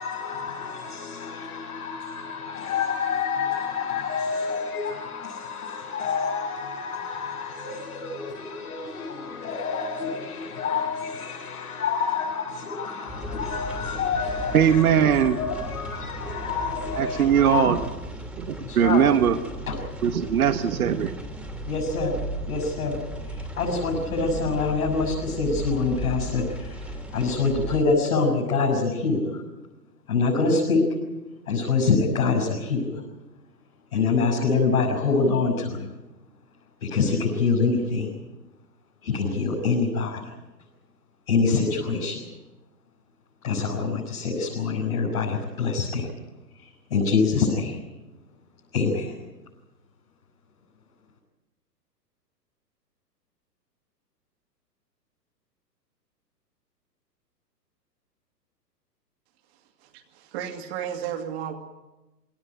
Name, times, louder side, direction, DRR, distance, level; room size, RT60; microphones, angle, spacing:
voice 1, 0.0-17.7 18.6-19.0 19.7-19.8 21.7-22.2 22.5-23.0 23.2-29.4 30.1-30.8 31.5-33.0 33.9-35.9 36.8-38.1 39.0-40.3 41.3-42.2 43.4-46.1 46.6-47.8 48.7-49.2, left 4 dB, 55° left, 6.7 m, -26 dB
sound 1, 13.1-27.8, right 1 dB, ahead, 2.6 m, -36 dB
voice 2, 14.5-15.4 16.9-17.9 18.3-19.4 20.0-21.2, right 8 dB, 60° right, 1.4 m, -20 dB
voice 3, 59.8-61.6, right 9 dB, 40° right, 2.5 m, -33 dB
23.5 x 17.5 x 9.1 m
figure-of-eight pair, 115°, 50 cm